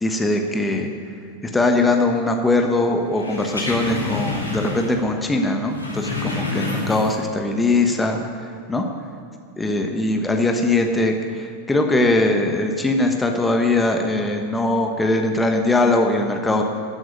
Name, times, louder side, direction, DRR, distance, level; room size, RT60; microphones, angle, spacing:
voice 1, 0.0-0.9 1.5-8.8 9.6-16.6, left 2 dB, 10° left, 3 dB, 1.2 m, -21 dB
sound 1, 3.1-5.1 5.3-7.4 7.7-7.8, left 3 dB, 80° left, 2.4 m, -28 dB
13.0 x 7.9 x 9.9 m, 2.4 s
figure-of-eight pair, 90°, 0 cm